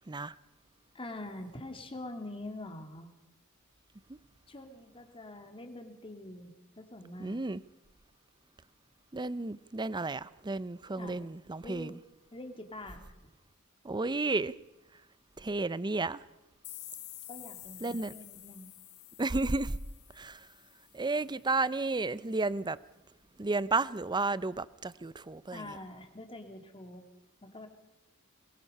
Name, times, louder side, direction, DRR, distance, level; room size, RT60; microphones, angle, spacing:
voice 1, 0.9-3.1 4.5-7.4 11.0-11.3 11.6-12.0 12.3-13.0 17.3-18.7 25.5-27.1 27.4-27.7, left 1 dB, 25° left, 2.5 m, -45 dB
voice 2, 7.2-7.6 9.1-11.9 13.8-14.5 15.4-16.2 17.8-18.1 19.2-19.8 20.2-20.5 20.9-22.8 23.4-25.6, right 3 dB, 20° right, 0.6 m, -32 dB
sound 1, 16.6-21.3, left 14 dB, 85° left, 2.1 m, -49 dB
22.0 x 21.5 x 5.5 m
head